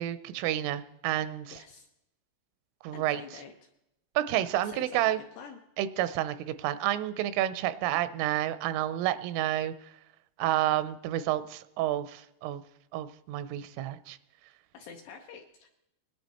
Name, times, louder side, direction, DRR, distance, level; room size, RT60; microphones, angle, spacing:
voice 1, 0.0-1.6 2.8-3.2 4.2-5.2 5.8-9.7 10.4-12.6 12.9-14.2, right 13 dB, 85° right, 14 dB, 3.1 m, -30 dB
voice 2, 1.5-1.9 2.9-3.7 4.5-5.6 14.7-15.7, left 6 dB, 75° left, 3 dB, 2.5 m, -47 dB
21.5 x 10.5 x 4.1 m, 0.85 s
omnidirectional pair, 5.7 m